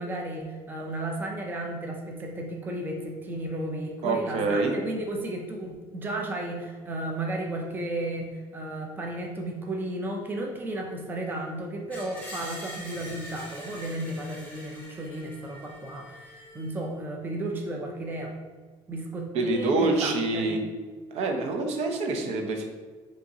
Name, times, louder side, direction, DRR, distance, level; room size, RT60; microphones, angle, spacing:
voice 1, 0.0-18.3 18.9-20.5, right 1 dB, 15° right, 1 dB, 0.5 m, -34 dB
voice 2, 4.0-4.7 19.3-20.6 21.1-22.6, right 3 dB, 70° right, 3 dB, 0.7 m, -26 dB
Screech, 11.9-16.9, equal, 15° left, 1.0 m, -44 dB
5.2 x 2.9 x 2.7 m, 1.4 s
cardioid pair, 135°, 12 cm